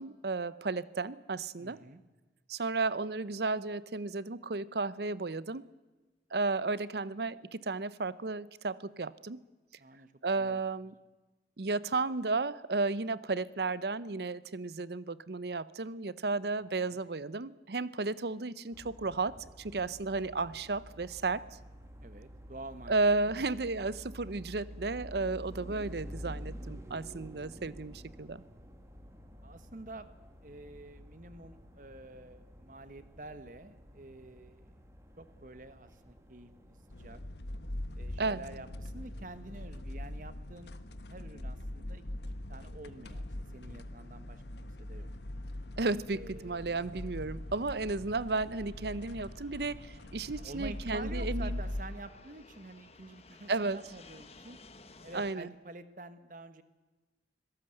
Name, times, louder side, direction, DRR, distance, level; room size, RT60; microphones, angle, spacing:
voice 1, 0.0-1.8 2.5-5.6 6.3-9.4 10.2-10.9 11.6-21.4 22.9-28.4 38.2-38.4 45.8-51.6 53.5-53.8 55.1-55.5, right 3 dB, 65° right, 18 dB, 0.7 m, -33 dB
voice 2, 1.6-2.0 9.8-10.1 10.4-10.6 16.7-17.0 22.0-23.5 29.4-30.1 30.4-34.8 35.2-37.2 37.9-40.7 41.1-45.1 46.1-46.7 50.4-54.6 55.0-56.6, right 2 dB, 45° right, 11 dB, 1.3 m, -49 dB
sound 1, 18.7-37.2, equal, 15° right, 2.2 m, -49 dB
sound 2, 36.9-51.8, left 1 dB, 75° left, 1.3 m, -41 dB
Fixed-wing aircraft airplane, 43.9-55.3, left 3 dB, 35° left, 1.4 m, -59 dB
25.0 x 17.0 x 7.8 m, 1.2 s
head